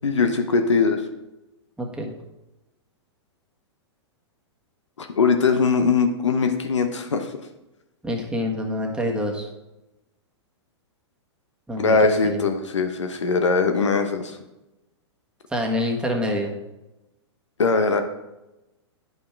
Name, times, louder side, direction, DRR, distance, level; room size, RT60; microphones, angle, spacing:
voice 1, 0.0-1.0 5.0-7.3 11.8-14.4 17.6-18.0, left 4 dB, 85° left, 7 dB, 0.9 m, -21 dB
voice 2, 1.8-2.1 8.0-9.5 11.7-12.4 15.5-16.5, left 1 dB, 5° right, 0 dB, 1.4 m, -26 dB
9.2 x 5.6 x 4.5 m, 0.98 s
hypercardioid pair, 115°, 15 cm